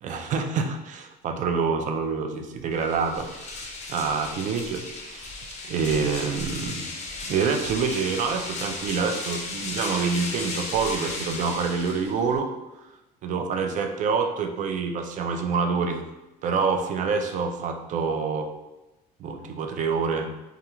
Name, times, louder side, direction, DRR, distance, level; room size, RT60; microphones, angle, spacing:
voice 1, 0.0-5.3 5.6-6.9 7.2-12.5 13.2-16.0 16.4-18.5 19.2-20.3, right 5 dB, 40° right, 5 dB, 0.4 m, -27 dB
sound 1, 2.7-12.4, left 3 dB, 35° left, 0.5 m, -35 dB
2.4 x 2.3 x 2.9 m, 1.0 s
supercardioid pair, 105°, 19 cm